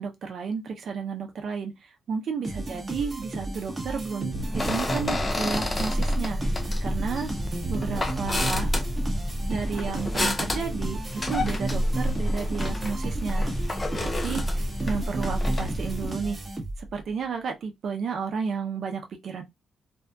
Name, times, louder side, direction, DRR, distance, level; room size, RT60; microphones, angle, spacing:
voice 1, 0.0-7.3 7.7-8.7 9.5-16.4 16.8-19.4, right 6 dB, 65° right, 0.5 m, -32 dB
sound 1, 2.4-17.0, right 2 dB, 20° right, 0.9 m, -34 dB
sound 2, 4.4-16.1, left 1 dB, 25° left, 0.5 m, -28 dB
2.6 x 2.3 x 2.3 m
cardioid pair, 105°, 0 cm